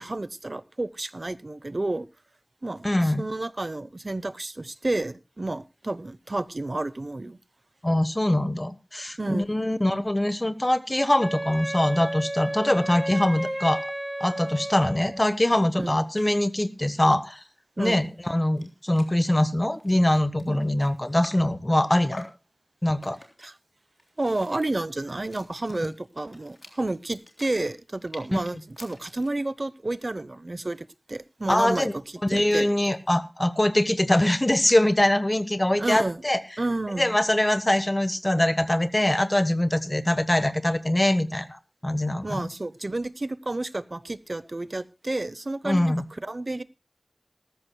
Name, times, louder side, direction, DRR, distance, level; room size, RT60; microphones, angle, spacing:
voice 1, 0.0-2.1 2.6-7.4 9.2-9.5 15.8-15.9 17.8-18.0 20.5-20.6 23.4-23.5 24.2-31.9 32.3-32.7 35.8-36.2 36.6-37.2 42.2-45.9 46.3-46.6, right 2 dB, 65° right, 16 dB, 0.9 m, -30 dB
voice 2, 2.8-3.2 7.8-13.9 14.2-17.4 17.8-22.2 22.8-23.2 25.8-25.9 31.5-31.9 32.2-36.4 37.0-42.5 45.6-46.0, left 1 dB, 35° left, 12 dB, 1.2 m, -23 dB
Wind instrument woodwind instrument, 11.2-15.3, right 1 dB, 10° right, 3.6 m, -33 dB
sound 1, 18.3-18.4 18.6-18.7 18.9-19.2 19.6-21.6 22.1-22.5 23.0-23.5 24.0-29.4, left 1 dB, 55° left, 3.5 m, -47 dB
19.5 x 14.0 x 2.3 m, 0.28 s
wide cardioid pair, 45°, 0 cm